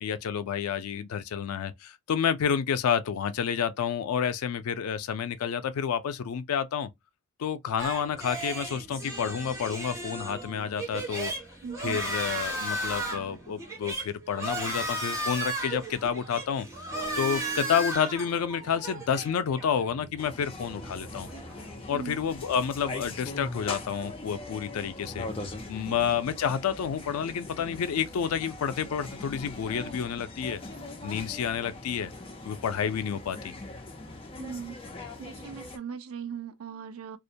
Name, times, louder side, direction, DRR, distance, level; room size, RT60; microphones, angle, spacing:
voice 1, 0.0-6.9 7.4-11.3 11.8-16.7 17.2-21.3 21.9-25.3 25.7-30.6 31.0-32.1 32.5-33.5, left 7 dB, 85° left, 0.4 m, -29 dB
sound 1, 7.8-21.7, right 1 dB, 15° right, 0.7 m, -35 dB
voice 2, 11.6-12.0 21.9-22.2 25.9-26.0 34.4-34.8 35.2-37.2, right 6 dB, 80° right, 0.4 m, -39 dB
sound 2, 16.9-20.3 20.7-24.4 25.0-29.3 29.9-30.0, right 2 dB, 35° right, 1.1 m, -49 dB
sound 3, 20.2-35.8, left 2 dB, 25° left, 0.4 m, -41 dB
2.4 x 2.1 x 2.6 m
head